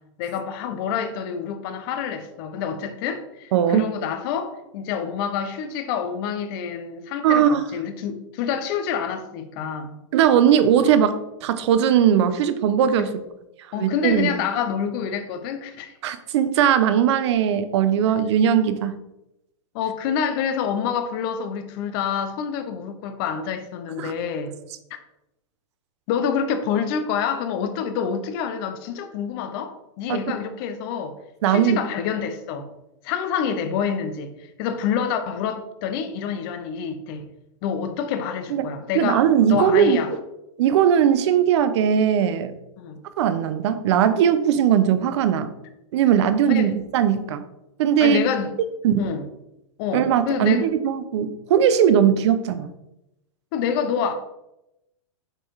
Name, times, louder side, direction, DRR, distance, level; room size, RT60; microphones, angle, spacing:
voice 1, 0.2-9.9 13.0-13.1 13.7-15.9 19.7-24.6 26.1-31.2 31.5-32.7 33.0-37.3 37.6-40.1 42.8-43.0 46.5-46.7 48.0-48.5 49.0-49.2 49.8-50.6 53.5-54.1, left 7 dB, 45° left, 0.9 m, -27 dB
voice 2, 3.5-3.9 7.2-7.6 10.1-13.2 13.8-14.3 16.0-19.0 24.0-24.1 30.1-30.2 31.4-31.8 38.5-38.7 38.9-40.2 40.6-42.5 43.2-45.5 45.9-47.4 47.8-48.2 48.8-49.0 49.9-52.7, right 9 dB, 60° right, 0.8 m, -19 dB
6.4 x 4.4 x 4.7 m
hypercardioid pair, 140°, 16 cm